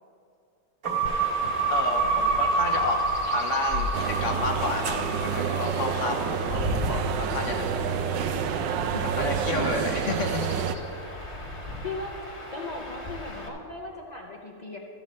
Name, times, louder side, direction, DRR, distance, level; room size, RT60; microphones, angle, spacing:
sound 1, 0.8-7.2, right 3 dB, 50° right, 1.8 m, -28 dB
Chirp tweet / Wind / Stream, 1.0-13.5, left 1 dB, 20° left, 1.2 m, -38 dB
voice 1, 1.7-7.7 9.0-10.5, left 4 dB, 60° left, 3 dB, 0.8 m, -31 dB
sound 2, 3.9-10.8, right 7 dB, 75° right, 1.2 m, -28 dB
voice 2, 11.8-12.1 12.5-14.8, left 3 dB, 90° left, -1 dB, 0.3 m, -37 dB
14.0 x 5.3 x 7.2 m, 2.5 s
omnidirectional pair, 2.0 m